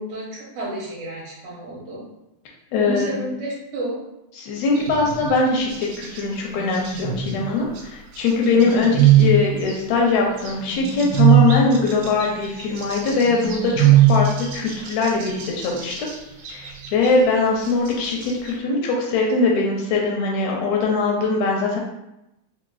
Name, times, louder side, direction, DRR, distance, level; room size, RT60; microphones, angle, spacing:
voice 1, 0.0-2.0 2.8-4.0, right 1 dB, 70° right, -7 dB, 2.1 m, -30 dB
voice 2, 2.7-3.1 4.4-16.1 16.5-21.8, left 3 dB, 80° left, -1 dB, 1.5 m, -21 dB
sound 1, 4.8-5.4 5.7-6.2 6.6-7.8 8.3-9.7 10.4-16.1 16.4-17.1 17.7-18.5, right 9 dB, 90° right, 2.1 m, -20 dB
5.0 x 2.5 x 2.3 m, 0.88 s
omnidirectional pair, 3.5 m